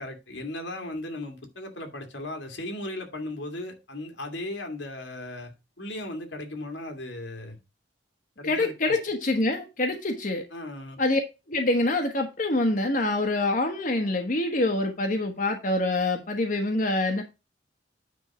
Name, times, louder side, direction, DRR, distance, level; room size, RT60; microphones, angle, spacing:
voice 1, 0.0-7.6 8.4-9.0 10.5-11.0, left 1 dB, 85° left, 2.2 m, -37 dB
voice 2, 8.4-10.4 11.0-11.2 11.5-17.2, left 2 dB, 45° left, 1.2 m, -25 dB
9.4 x 3.7 x 6.0 m
head